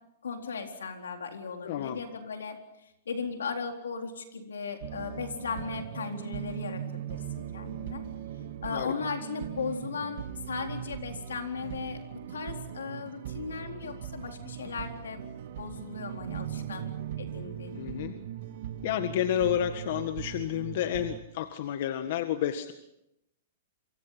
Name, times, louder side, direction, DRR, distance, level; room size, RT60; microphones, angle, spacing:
voice 1, 0.2-2.6 3.1-8.0 8.6-15.2 15.6-17.9, left 5 dB, 90° left, 4 dB, 4.1 m, -37 dB
voice 2, 1.6-2.0 8.7-8.9 17.8-18.1 18.8-22.7, left 11 dB, 60° left, 9 dB, 1.6 m, -30 dB
sound 1, 4.8-21.2, right 10 dB, 60° right, 2.5 m, -39 dB
28.0 x 24.5 x 5.8 m, 0.84 s
hypercardioid pair, 130°, 0 cm